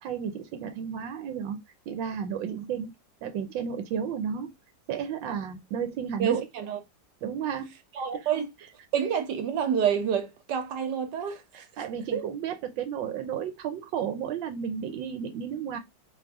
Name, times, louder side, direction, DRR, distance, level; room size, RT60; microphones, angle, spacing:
voice 1, 0.0-1.6 1.9-2.9 3.2-4.5 4.9-6.5 7.2-7.7 8.1-8.3 11.5-15.8, right 7 dB, 90° right, 1.4 m, -33 dB
voice 2, 6.2-6.8 8.0-8.5 8.9-11.7 12.1-12.2, right 8 dB, 70° right, 1.4 m, -28 dB
4.6 x 2.6 x 3.5 m
omnidirectional pair, 2.0 m